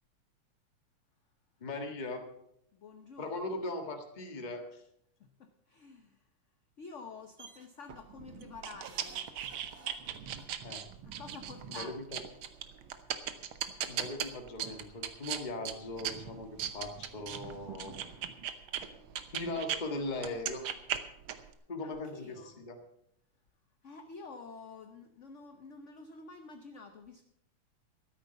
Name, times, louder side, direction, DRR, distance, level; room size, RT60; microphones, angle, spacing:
voice 1, 1.6-2.3 3.2-4.8 10.6-10.8 11.7-12.2 13.8-18.0 19.3-20.6 21.7-22.7, left 2 dB, 25° left, 4 dB, 1.5 m, -39 dB
voice 2, 2.7-3.4 5.2-6.3 6.8-9.3 11.0-12.2 21.4-22.6 23.8-27.2, left 4 dB, 55° left, 6 dB, 0.8 m, -49 dB
sound 1, 7.4-7.7 8.8-10.5 11.7-11.8 12.0-12.1, right 5 dB, 40° right, 1.3 m, -54 dB
sound 2, 7.9-19.8 20.2-21.5, right 9 dB, 70° right, 1.7 m, -39 dB
13.0 x 9.9 x 6.9 m, 0.77 s
omnidirectional pair, 2.4 m